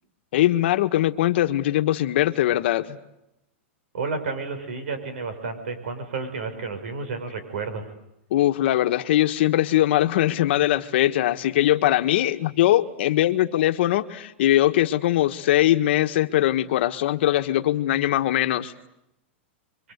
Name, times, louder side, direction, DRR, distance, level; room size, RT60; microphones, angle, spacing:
voice 1, 0.3-3.0 8.3-18.7, left 13 dB, 60° left, 8 dB, 1.5 m, -21 dB
voice 2, 3.9-7.8, right 4 dB, 75° right, 9 dB, 6.2 m, -31 dB
29.5 x 24.0 x 8.2 m, 0.85 s
supercardioid pair, 155°, 7 cm